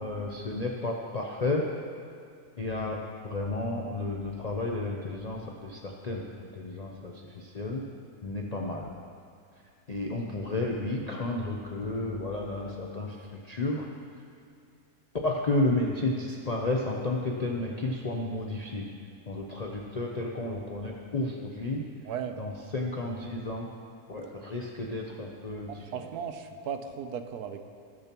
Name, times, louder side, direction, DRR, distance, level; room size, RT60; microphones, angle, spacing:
voice 1, 0.0-1.6 2.6-7.8 8.2-8.9 9.9-13.9 15.2-18.8 19.3-21.9 22.4-23.7 24.1-26.0, left 2 dB, 50° left, -1 dB, 0.4 m, -32 dB
voice 2, 22.0-22.4 25.7-27.6, right 7 dB, 75° right, 7 dB, 1.2 m, -36 dB
18.5 x 6.9 x 3.0 m, 2.3 s
omnidirectional pair, 1.7 m